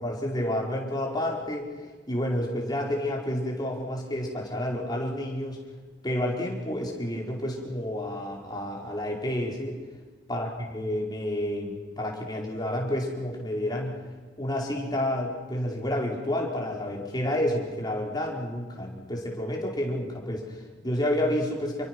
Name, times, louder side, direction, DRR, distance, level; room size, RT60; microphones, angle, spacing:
voice 1, 0.0-1.7 2.1-5.6 6.0-9.8 10.3-14.0 14.4-21.9, left 1 dB, 25° left, -1 dB, 4.7 m, -30 dB
28.5 x 23.5 x 6.2 m, 1.4 s
head